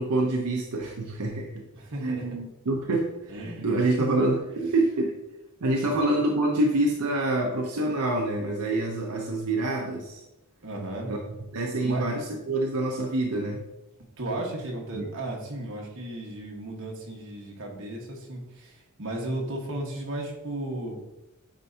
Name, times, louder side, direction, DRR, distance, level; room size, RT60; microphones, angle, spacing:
voice 1, 0.0-1.6 2.0-3.1 3.6-5.1 5.6-10.2 11.0-11.2 11.5-13.6 14.9-15.1, right 2 dB, 85° right, 1 dB, 0.7 m, -26 dB
voice 2, 1.7-2.3 3.3-4.1 5.8-5.9 10.6-11.1 11.7-12.1 14.2-21.0, right 1 dB, 60° right, -1 dB, 1.4 m, -35 dB
8.9 x 4.4 x 2.8 m, 0.97 s
head